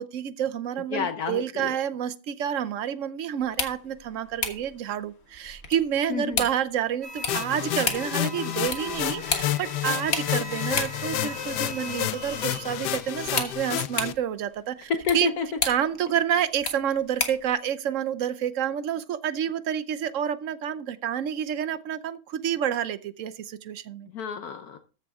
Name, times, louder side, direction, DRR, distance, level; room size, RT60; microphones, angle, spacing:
voice 1, 0.0-15.3 15.6-24.1, right 9 dB, 60° right, 1.0 m, -29 dB
voice 2, 0.9-1.7 6.1-6.5 15.1-15.5 24.1-24.9, left 6 dB, 70° left, 1.3 m, -30 dB
sound 1, 3.4-17.5, left 4 dB, 45° left, 1.6 m, -35 dB
sound 2, 7.0-13.5, equal, 15° right, 4.4 m, -40 dB
sound 3, 7.3-14.1, left 13 dB, 90° left, 1.2 m, -30 dB
14.0 x 6.9 x 3.6 m
omnidirectional pair, 1.7 m